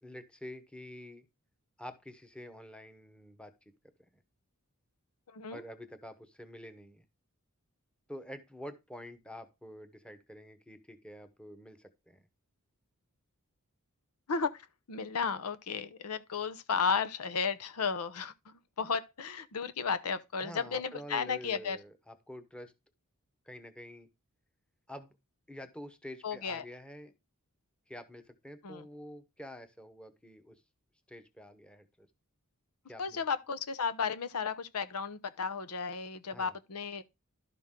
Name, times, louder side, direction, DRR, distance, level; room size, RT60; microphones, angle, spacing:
voice 1, 0.0-1.3 1.8-3.5 4.1-4.2 5.5-7.0 8.1-12.2 20.4-22.7 23.4-24.1 24.9-25.1 25.5-27.1 27.9-30.5 31.1-32.1 32.9-33.2 36.3-36.5, equal, 5° left, 0.9 m, -47 dB
voice 2, 5.3-5.6 14.3-21.8 26.2-26.6 28.6-28.9 33.0-37.0, left 5 dB, 85° left, 0.8 m, -34 dB
11.5 x 5.9 x 3.7 m
head